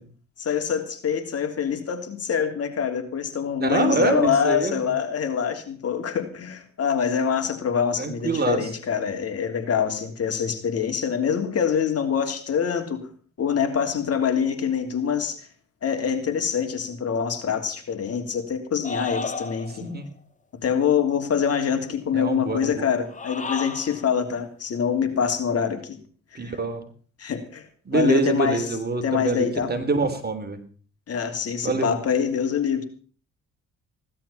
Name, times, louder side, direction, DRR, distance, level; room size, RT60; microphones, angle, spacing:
voice 1, 0.4-13.1 13.4-15.4 15.8-19.9 20.6-26.0 26.3-26.6 27.2-27.7 27.9-28.6 29.0-29.7 31.1-32.8, left 7 dB, 50° left, 5 dB, 3.2 m, -25 dB
voice 2, 3.6-4.7 8.0-8.6 19.8-20.1 22.1-22.9 26.4-26.8 27.9-30.6 31.6-31.9, right 3 dB, 30° right, 7 dB, 3.5 m, -25 dB
sound 1, 18.8-19.9 23.0-24.1, left 3 dB, 25° left, 2.2 m, -32 dB
16.5 x 12.0 x 5.7 m, 0.42 s
cardioid pair, 90°, 30 cm